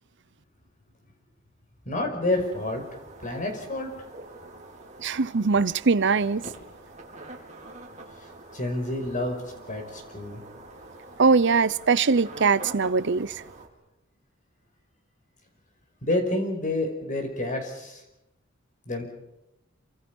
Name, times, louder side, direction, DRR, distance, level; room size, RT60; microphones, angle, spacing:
voice 1, 1.9-2.8 3.2-3.9 8.5-9.4 9.7-10.4 16.0-18.0 18.9-19.0, left 2 dB, 40° left, 5.6 m, -28 dB
sound 1, 2.3-13.7, right 2 dB, 35° right, 4.5 m, -45 dB
voice 2, 5.0-6.4 11.2-13.3, right 4 dB, 60° right, 0.8 m, -21 dB
27.5 x 25.5 x 5.5 m
head